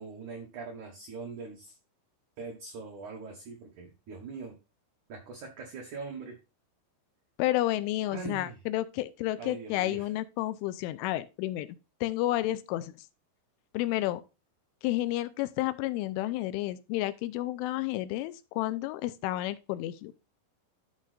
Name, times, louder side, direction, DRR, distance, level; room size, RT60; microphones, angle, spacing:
voice 1, 0.0-1.8 2.4-4.6 5.1-6.4 8.1-8.6 9.4-10.1, right 4 dB, 60° right, 2.1 m, -42 dB
voice 2, 7.4-11.7 12.0-12.9 13.7-14.2 14.8-20.1, left 15 dB, 85° left, 3.1 m, -31 dB
13.0 x 6.3 x 2.5 m
omnidirectional pair, 5.6 m